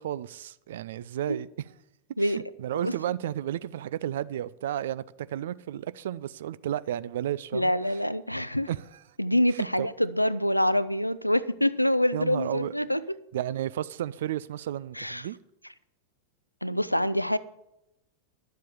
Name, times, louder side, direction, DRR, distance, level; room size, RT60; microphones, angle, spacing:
voice 1, 0.0-1.5 2.2-7.7 8.7-8.8 9.6-9.9 12.1-12.7 13.3-15.4, right 11 dB, 60° right, 0.4 m, -32 dB
voice 2, 7.5-8.7 9.2-13.0 14.9-15.3 16.6-17.4, equal, 90° left, 0.5 m, -26 dB
11.5 x 7.5 x 7.1 m
figure-of-eight pair, 90°, 0 cm